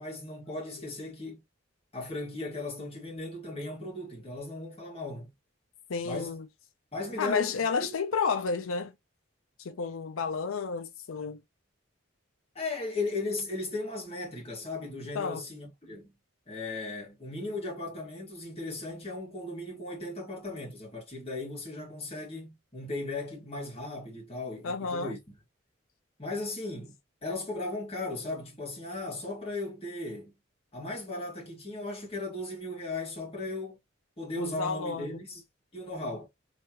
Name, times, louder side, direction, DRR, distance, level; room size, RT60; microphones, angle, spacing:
voice 1, 0.0-1.4 1.9-5.3 6.0-6.4 6.9-7.5 7.8-7.9 12.5-16.1 16.5-25.2 26.2-30.3 30.7-33.8 34.2-35.4 35.7-36.3, left 2 dB, 30° left, 2.0 m, -37 dB
voice 2, 5.9-6.5 7.2-8.9 9.6-11.4 15.1-15.4 24.6-25.1 34.4-35.2, left 5 dB, 85° left, 0.5 m, -31 dB
3.3 x 3.2 x 2.9 m
head